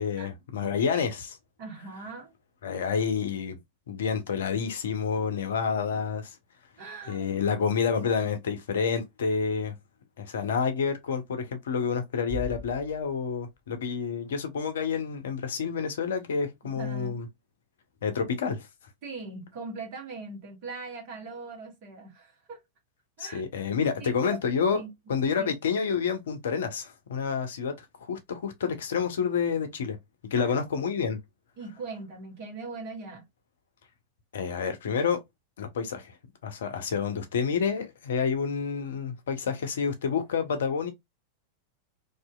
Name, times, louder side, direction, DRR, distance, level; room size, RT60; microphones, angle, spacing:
voice 1, 0.0-1.3 2.6-3.6 3.9-6.4 7.1-9.7 10.2-17.3 18.0-18.7 23.2-24.8 25.1-30.0 30.3-31.2 34.3-35.2 35.6-36.2 36.4-40.9, left 6 dB, 60° left, 0.6 m, -29 dB
voice 2, 0.6-1.1 1.6-2.3 5.9-6.0 6.8-7.4 16.8-17.2 19.0-22.6 23.2-23.4 24.0-24.4 24.7-24.9 25.4-25.5 30.4-30.6 31.6-33.2 36.9-37.0, right 4 dB, 45° right, 1.1 m, -40 dB
Bass drum, 12.3-14.0, left 3 dB, 5° left, 0.5 m, -41 dB
2.7 x 2.4 x 2.2 m
figure-of-eight pair, 90°, 0 cm